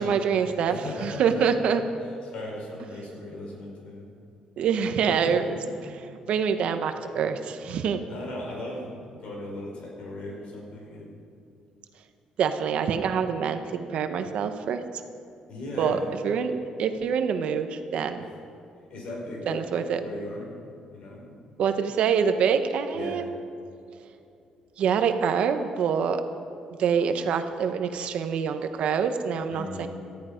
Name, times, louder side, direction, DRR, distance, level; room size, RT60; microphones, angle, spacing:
voice 1, 0.0-1.8 4.6-5.6 6.3-8.0 12.4-14.8 15.8-18.2 19.5-20.0 21.6-23.3 24.8-26.2 26.8-29.9, right 7 dB, 55° right, 8 dB, 1.0 m, -25 dB
voice 2, 0.7-1.4 2.2-4.1 5.1-5.9 8.1-11.1 15.5-16.1 18.2-18.3 18.9-20.5 20.9-21.4 22.9-23.2 29.5-29.9, left 1 dB, 50° left, 0 dB, 4.5 m, -38 dB
18.5 x 14.0 x 5.1 m, 2.6 s
cardioid pair, 180°, 2 cm